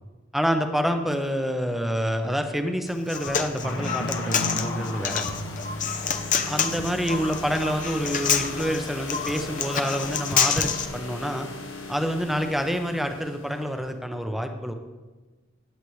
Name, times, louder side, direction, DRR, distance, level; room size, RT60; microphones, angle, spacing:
voice 1, 0.3-5.2 6.5-11.5 11.9-14.7, equal, ahead, 5 dB, 0.7 m, -27 dB
Human voice, 2.9-10.9, left 7 dB, 40° left, 0.6 m, -27 dB
sound 1, 3.0-10.8, left 1 dB, 75° left, 1.3 m, -36 dB
sound 2, 4.0-13.7, left 2 dB, 90° left, 1.4 m, -39 dB
16.5 x 8.3 x 3.2 m, 1.2 s
head